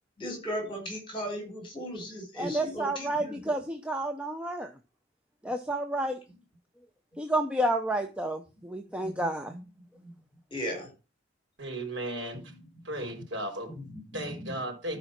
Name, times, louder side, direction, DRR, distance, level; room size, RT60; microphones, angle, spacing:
voice 1, 0.2-3.5 9.0-9.6 10.0-10.1 10.5-10.9 13.1-13.2 13.7-14.5, equal, 25° left, 4.5 m, -37 dB
voice 2, 2.4-4.7 5.4-6.2 7.2-9.5, right 1 dB, 5° right, 0.8 m, -30 dB
voice 3, 11.6-12.4 12.8-13.8 14.1-15.0, right 1 dB, 85° right, 3.9 m, -35 dB
13.0 x 5.1 x 6.0 m
head